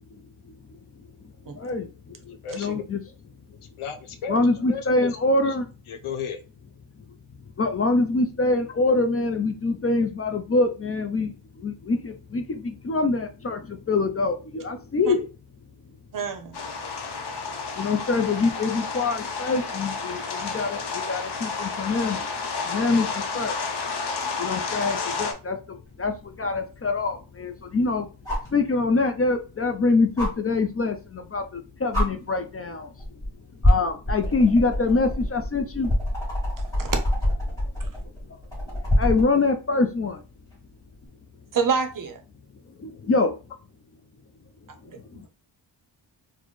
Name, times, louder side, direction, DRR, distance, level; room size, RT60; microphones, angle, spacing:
voice 1, 1.6-3.0 4.3-5.7 7.6-11.3 11.6-15.3 17.8-22.3 22.7-23.6 24.4-28.1 28.5-32.9 33.6-35.9 39.0-40.2 42.8-43.3 44.9-45.0, left 3 dB, 30° left, 6 dB, 0.4 m, -25 dB
voice 2, 2.4-2.8 3.8-4.4 4.7-5.1 5.5-5.6 5.9-6.4, left 6 dB, 85° left, 5 dB, 0.8 m, -33 dB
voice 3, 16.1-16.7 36.8-37.0 41.5-42.2 45.1-45.3, right 6 dB, 45° right, 6 dB, 0.6 m, -26 dB
sound 1, 16.5-25.3, left 4 dB, 55° left, 0.8 m, -31 dB
sound 2, 26.0-26.1 28.2-28.6 30.2-30.3 31.4-31.5 31.9-32.1 33.0-33.3 33.6-39.3 40.9-41.0, left 1 dB, 5° left, 2.0 m, -24 dB
4.1 x 2.1 x 3.1 m, 0.32 s
wide cardioid pair, 135°, 48 cm